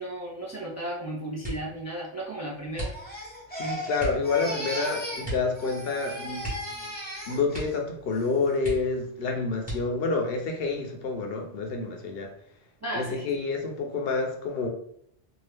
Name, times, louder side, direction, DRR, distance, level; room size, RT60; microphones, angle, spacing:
voice 1, 0.0-2.9 12.8-13.3, right 1 dB, 25° right, -3 dB, 0.4 m, -34 dB
sound 1, 1.4-1.8 2.7-3.4 4.0-4.3 5.2-5.6 5.8-5.9 6.4-7.1 7.5-7.9 8.2-8.3 8.6-9.1 9.6-10.2 10.9-11.5 11.9-12.3, right 2 dB, 10° right, 1.0 m, -36 dB
Crying sobbing, 2.8-5.3 5.5-7.7 8.1-8.5, equal, 10° left, 0.7 m, -37 dB
voice 2, 3.5-6.9 7.3-12.3 12.9-14.7, left 4 dB, 70° left, 3 dB, 0.8 m, -28 dB
2.8 x 2.3 x 3.3 m, 0.69 s
omnidirectional pair, 1.1 m